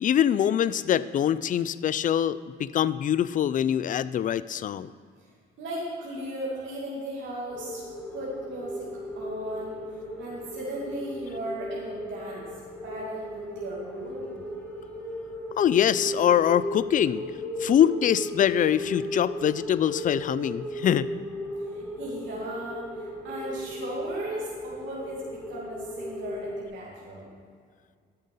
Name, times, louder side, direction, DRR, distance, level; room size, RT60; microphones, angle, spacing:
voice 1, 0.0-4.9 15.6-17.3 17.6-21.1, left 10 dB, 40° left, 17 dB, 0.4 m, -24 dB
voice 2, 5.6-7.8 8.1-8.9 9.1-9.8 10.2-12.5 12.8-14.4 21.6-27.3, right 1 dB, 70° right, -5 dB, 2.5 m, -36 dB
sound 1, 7.5-26.7, left 1 dB, 5° left, 1.3 m, -36 dB
12.0 x 6.5 x 5.5 m, 2.1 s
cardioid pair, 90°, 20 cm